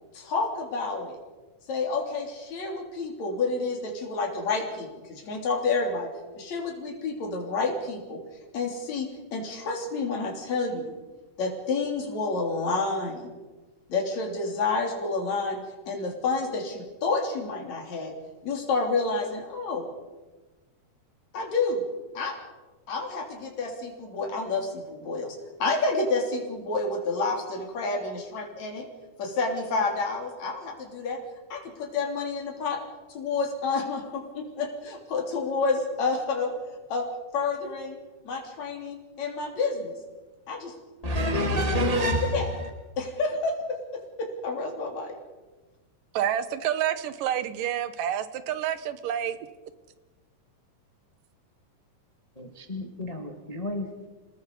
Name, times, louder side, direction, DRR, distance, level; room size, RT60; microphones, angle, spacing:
voice 1, 0.1-1.2 1.7-8.2 8.5-10.9 11.4-13.3 13.9-15.6 15.9-18.1 18.4-19.9 21.3-21.8 22.1-22.4 22.9-28.9 29.2-31.2 31.5-32.8 33.1-36.5 36.9-37.0 37.3-38.0 38.2-39.9 40.5-40.7 42.3-42.5 43.0-43.6 44.2-45.2, left 3 dB, 55° left, 2 dB, 4.5 m, -29 dB
voice 2, 41.0-42.7 52.4-54.1, equal, 15° left, 4 dB, 1.5 m, -28 dB
voice 3, 46.1-49.4, right 10 dB, 80° right, 13 dB, 2.7 m, -28 dB
29.0 x 18.5 x 5.4 m, 1.2 s
omnidirectional pair, 3.8 m